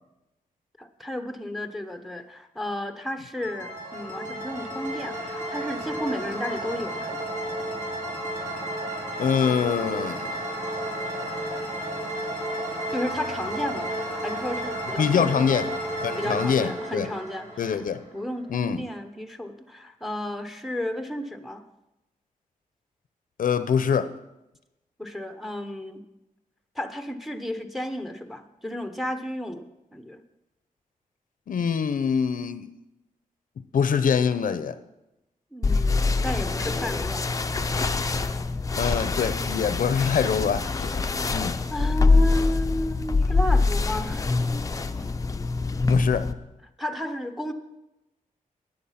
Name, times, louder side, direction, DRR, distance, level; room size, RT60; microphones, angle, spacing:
voice 1, 0.8-7.2 12.9-13.9 14.2-15.6 16.2-17.8 18.1-21.6 25.0-26.0 26.8-29.7 29.9-30.2 35.5-37.3 41.7-44.3 46.8-47.5, left 1 dB, ahead, 0.9 m, -33 dB
sound 1, 3.4-18.2, right 1 dB, 60° right, 4.8 m, -32 dB
voice 2, 9.2-10.4 15.0-15.7 16.0-17.1 17.6-18.0 18.5-18.8 23.4-24.1 31.5-32.7 33.7-34.8 38.8-41.0 41.3-41.6 45.9-46.3, left 7 dB, 70° left, 0.7 m, -24 dB
sound 2, 35.6-46.3, left 3 dB, 25° left, 0.5 m, -24 dB
15.5 x 10.0 x 5.7 m
wide cardioid pair, 170°, 14 cm